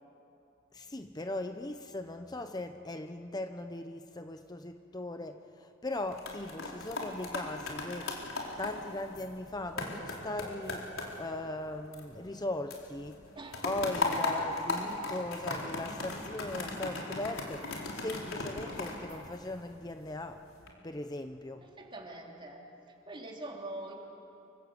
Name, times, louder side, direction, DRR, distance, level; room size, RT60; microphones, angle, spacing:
voice 1, 0.7-8.1 8.6-13.2 13.6-20.4 20.8-21.6, left 2 dB, 20° left, 7 dB, 0.8 m, -39 dB
sound 1, 5.9-12.4 12.7-19.9 20.4-20.7, left 2 dB, 80° left, 4.6 m, -37 dB
voice 2, 21.6-22.6 23.1-23.9, right 2 dB, 25° right, 0 dB, 3.6 m, -43 dB
28.0 x 25.5 x 8.2 m, 2.8 s
head